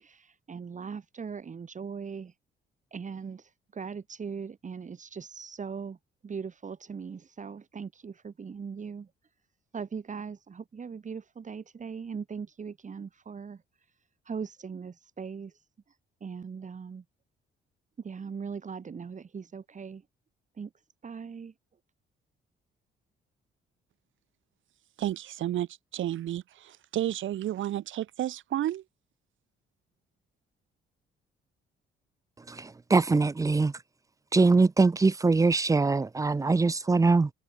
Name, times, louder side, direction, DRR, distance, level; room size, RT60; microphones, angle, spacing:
voice 1, 0.0-2.3 2.9-6.0 6.2-9.1 9.7-13.6 14.3-15.5 16.2-17.0 18.0-20.0 20.6-20.7 21.0-21.5, right 6 dB, 40° right, 2.6 m, -39 dB
voice 2, 25.0-28.8, right 12 dB, 75° right, 5.0 m, -31 dB
voice 3, 32.5-33.7 34.3-37.3, right 3 dB, 15° right, 0.5 m, -23 dB
cardioid pair, 90°, 20 cm